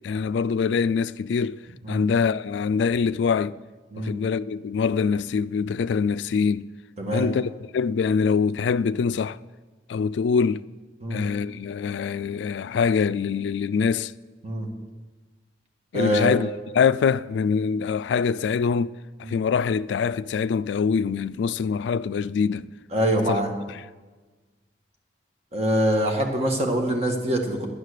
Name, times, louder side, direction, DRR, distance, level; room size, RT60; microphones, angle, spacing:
voice 1, 0.0-1.6 1.9-3.6 4.0-6.6 7.1-9.4 9.9-10.6 11.1-14.1 15.9-18.9 19.2-22.7 23.3-23.4 23.7-23.8, left 6 dB, 70° left, 0.3 m, -24 dB
voice 2, 15.9-16.3 19.2-19.4 22.9-23.5 25.5-27.7, equal, 35° right, 1.6 m, -24 dB
10.0 x 9.1 x 6.5 m
head